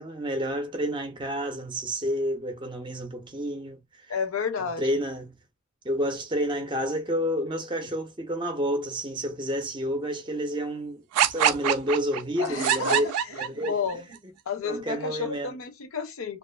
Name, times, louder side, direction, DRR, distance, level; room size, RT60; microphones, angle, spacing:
voice 1, 0.0-3.8 4.6-5.4 5.8-13.1 13.4-13.8 14.6-15.6, equal, 20° right, 0.5 m, -29 dB
voice 2, 4.1-4.9 12.4-14.1 14.5-16.4, left 5 dB, 65° left, 0.5 m, -31 dB
sound 1, 11.1-13.9, right 9 dB, 85° right, 0.3 m, -24 dB
2.3 x 2.3 x 2.2 m
head